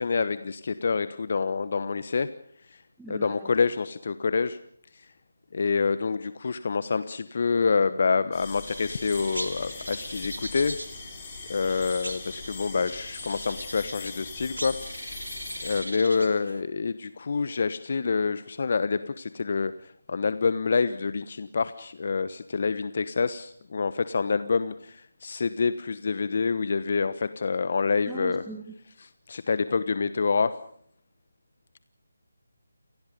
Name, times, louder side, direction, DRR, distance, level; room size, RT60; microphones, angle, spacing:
voice 1, 0.0-2.3 2.7-2.8 3.1-4.6 4.9-5.1 5.5-10.8 11.5-14.8 15.0-15.3 15.6-28.4 29.0-30.5, left 4 dB, 50° left, 14 dB, 1.1 m, -27 dB
voice 2, 3.0-3.5 28.1-28.6, right 3 dB, 5° right, 1 dB, 1.8 m, -39 dB
sound 1, 8.3-15.8, left 4 dB, 20° left, 7.2 m, -41 dB
sound 2, 8.6-16.6, right 1 dB, 90° right, 3.4 m, -40 dB
29.0 x 19.0 x 5.3 m, 0.63 s
figure-of-eight pair, 155°, 0 cm